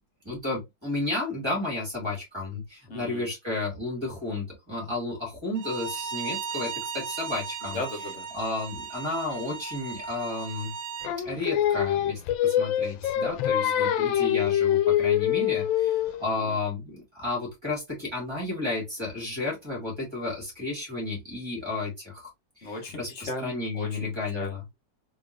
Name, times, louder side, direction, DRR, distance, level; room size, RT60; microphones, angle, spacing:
voice 1, 0.2-7.8 8.3-10.7 11.2-22.3 22.6-24.6, left 2 dB, 15° right, 2.3 m, -32 dB
voice 2, 2.9-3.3 7.6-8.2 13.6-14.0 16.3-16.6 22.6-24.8, left 1 dB, 45° left, 1.2 m, -37 dB
Bowed string instrument, 5.6-11.1, right 6 dB, 65° right, 1.5 m, -36 dB
Singing, 11.0-16.2, left 10 dB, 85° left, 1.3 m, -24 dB
3.8 x 3.5 x 2.5 m
omnidirectional pair, 2.0 m